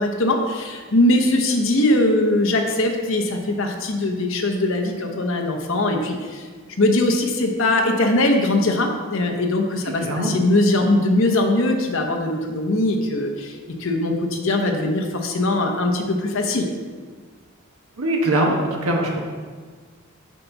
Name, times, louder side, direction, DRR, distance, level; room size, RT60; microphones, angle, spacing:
voice 1, 0.0-6.5 6.8-16.7, left 1 dB, 65° left, 3 dB, 0.9 m, -21 dB
voice 2, 10.0-10.3 18.0-19.2, right 1 dB, 85° right, 0 dB, 1.2 m, -21 dB
7.3 x 4.1 x 5.9 m, 1.5 s
head